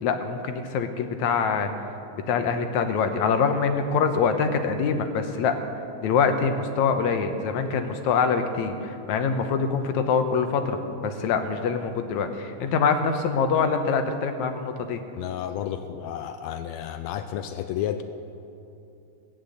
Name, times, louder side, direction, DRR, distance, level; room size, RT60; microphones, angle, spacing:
voice 1, 0.0-1.7 2.1-5.6 6.0-15.0, left 5 dB, 70° left, 7 dB, 2.2 m, -24 dB
voice 2, 15.2-18.0, left 10 dB, 85° left, 9 dB, 1.5 m, -31 dB
17.5 x 10.0 x 7.9 m, 2.8 s
omnidirectional pair, 3.7 m